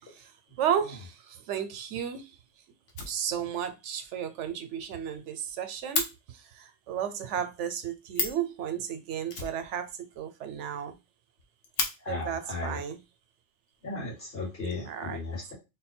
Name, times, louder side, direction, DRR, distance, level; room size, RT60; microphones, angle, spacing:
voice 1, 0.6-2.4 3.1-10.9 12.1-13.0 14.9-15.2, right 9 dB, 80° right, 0.9 m, -33 dB
Fire, 2.5-2.6 2.9-3.7 4.0-4.1 4.4-4.5 4.8-4.9 5.1-6.1 7.8-7.9 8.1-8.5 9.3-10.2 10.5-10.6 10.9-11.0 11.4-11.9 12.9-13.0 13.7-14.3, left 4 dB, 85° left, 1.2 m, -33 dB
voice 2, 12.0-12.8 13.8-15.5, left 3 dB, 60° left, 2.3 m, -35 dB
3.7 x 2.2 x 4.2 m
omnidirectional pair, 1.2 m